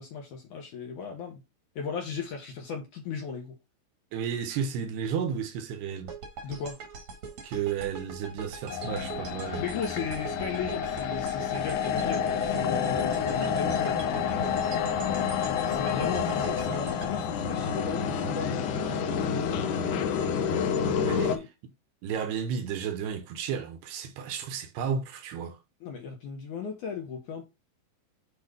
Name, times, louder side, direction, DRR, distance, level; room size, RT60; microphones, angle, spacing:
voice 1, 0.0-1.4 1.8-3.6 6.4-6.8 9.6-14.1 15.7-19.7 20.6-20.7 21.1-21.5 25.8-27.4, left 6 dB, 65° left, 2.2 m, -36 dB
voice 2, 4.1-6.1 7.4-9.6 16.1-16.2 21.0-21.3 22.0-25.6, right 7 dB, 75° right, 2.8 m, -32 dB
sound 1, 6.1-18.3, right 5 dB, 55° right, 1.9 m, -42 dB
sound 2, 8.7-21.4, left 7 dB, 90° left, 1.8 m, -29 dB
8.2 x 3.3 x 5.1 m
omnidirectional pair, 4.9 m